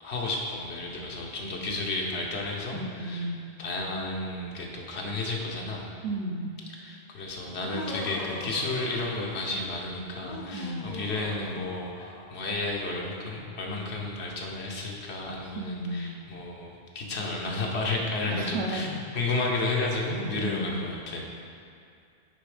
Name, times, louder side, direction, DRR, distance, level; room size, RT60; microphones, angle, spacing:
voice 1, 0.0-3.3 3.6-5.9 6.8-21.2, left 2 dB, 85° left, -1 dB, 1.3 m, -32 dB
voice 2, 2.7-3.4 6.0-6.5 10.5-10.9 15.5-16.1 18.2-18.9 20.4-20.9, right 1 dB, 80° right, 1 dB, 1.0 m, -33 dB
Laughter, 7.5-9.7 10.1-12.5, left 2 dB, 45° left, 0.7 m, -41 dB
9.2 x 3.5 x 4.9 m, 2.4 s
omnidirectional pair, 1.1 m